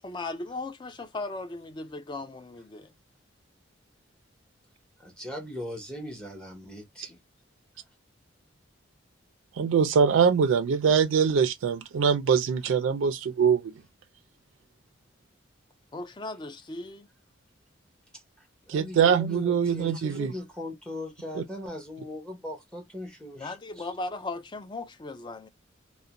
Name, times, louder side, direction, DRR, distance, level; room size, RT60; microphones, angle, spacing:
voice 1, 0.0-2.9 15.9-17.1 23.4-25.5, left 3 dB, 25° left, 0.3 m, -37 dB
voice 2, 5.0-7.2 18.1-24.0, left 1 dB, 5° left, 0.7 m, -39 dB
voice 3, 9.6-13.8 18.7-20.3 21.4-21.5, right 6 dB, 80° right, 0.3 m, -23 dB
2.4 x 2.1 x 2.8 m
head